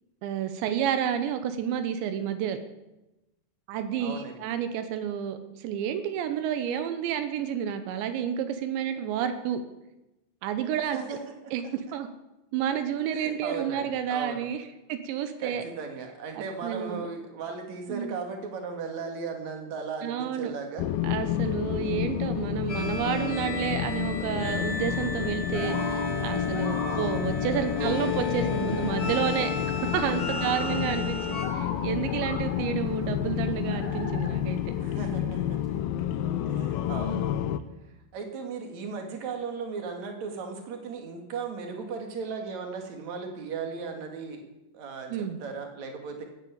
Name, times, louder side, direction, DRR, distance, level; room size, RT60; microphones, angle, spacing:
voice 1, 0.2-2.6 3.7-9.6 10.4-11.2 11.5-12.1 12.5-15.6 16.4-17.1 17.9-18.1 20.0-20.5 21.0-34.6 37.1-37.2 45.1-45.4, right 9 dB, 85° right, 9 dB, 3.3 m, -30 dB
voice 2, 4.0-4.4 10.8-11.7 13.1-14.5 15.4-21.0 26.8-27.2 27.8-28.2 30.4-31.0 34.8-35.6 36.5-37.3 38.1-44.4 44.7-46.2, right 5 dB, 45° right, 4 dB, 3.0 m, -37 dB
sound 1, 20.8-37.6, left 11 dB, 80° left, 2.1 m, -30 dB
sound 2, 22.7-31.5, left 2 dB, 35° left, 4.0 m, -34 dB
sound 3, 24.8-35.6, left 3 dB, 50° left, 4.4 m, -42 dB
15.0 x 9.5 x 8.5 m, 0.98 s
omnidirectional pair, 5.1 m